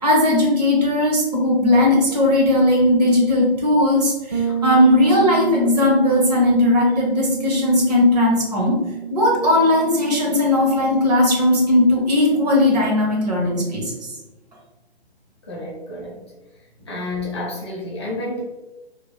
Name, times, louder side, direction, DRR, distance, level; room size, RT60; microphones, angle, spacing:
voice 1, 0.0-8.8 9.1-13.9, left 1 dB, 40° right, -3 dB, 1.1 m, -17 dB
Bass guitar, 4.3-14.0, right 9 dB, 20° right, 0.4 m, -30 dB
voice 2, 15.4-16.2 16.9-18.4, left 2 dB, 25° left, -4 dB, 0.6 m, -30 dB
2.9 x 2.4 x 3.9 m, 1.0 s
figure-of-eight pair, 140°, 32 cm